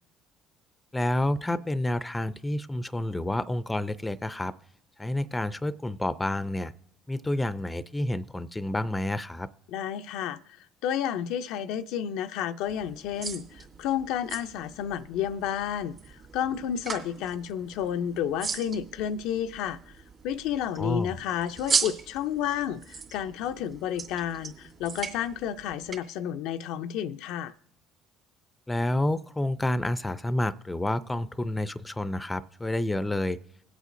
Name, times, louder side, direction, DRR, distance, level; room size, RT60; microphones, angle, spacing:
voice 1, 0.9-4.5 5.0-6.7 7.1-9.5 20.8-21.1 28.7-33.4, left 1 dB, 10° left, 0.5 m, -29 dB
voice 2, 9.7-10.4 10.8-19.8 20.2-27.5, left 9 dB, 75° left, 0.4 m, -31 dB
sound 1, 12.7-26.0, right 5 dB, 45° right, 2.3 m, -37 dB
21.5 x 8.1 x 2.6 m
supercardioid pair, 80°, 0 cm